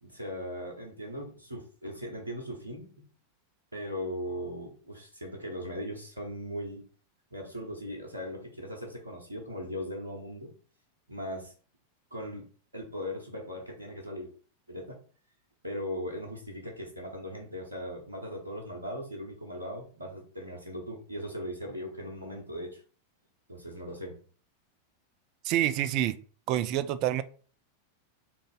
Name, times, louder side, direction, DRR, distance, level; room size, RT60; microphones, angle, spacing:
voice 1, 0.0-3.1 3.7-6.8 7.3-10.5 11.1-11.5 12.1-12.5 12.7-14.3 14.7-15.0 15.6-22.8 23.5-24.2, equal, 80° right, 0 dB, 0.9 m, -39 dB
voice 2, 25.4-26.2 26.5-27.2, right 12 dB, 40° right, 13 dB, 0.3 m, -27 dB
4.0 x 2.5 x 3.7 m, 0.41 s
figure-of-eight pair, 90°, 0 cm